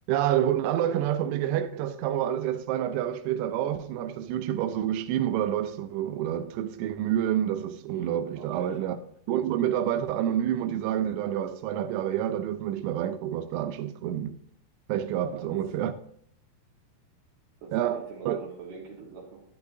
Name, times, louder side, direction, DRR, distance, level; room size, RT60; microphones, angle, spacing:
voice 1, 0.1-9.0 9.3-14.4 14.9-15.9 17.7-18.4, right 11 dB, 90° right, 2.9 m, -28 dB
voice 2, 8.4-9.0 15.3-15.6 17.6-19.4, right 5 dB, 65° right, 3.0 m, -44 dB
12.0 x 10.5 x 2.6 m
omnidirectional pair, 5.2 m